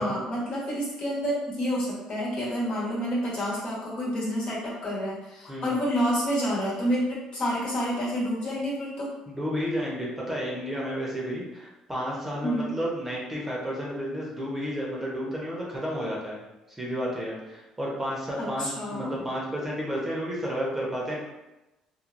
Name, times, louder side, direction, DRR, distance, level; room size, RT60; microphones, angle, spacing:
voice 1, 0.0-9.1 12.4-12.7 18.4-19.1, equal, 55° left, -6 dB, 1.2 m, -29 dB
voice 2, 9.3-16.4 16.8-21.2, equal, 15° right, -5 dB, 0.8 m, -31 dB
3.1 x 2.2 x 2.5 m, 1.0 s
supercardioid pair, 85°, 2 cm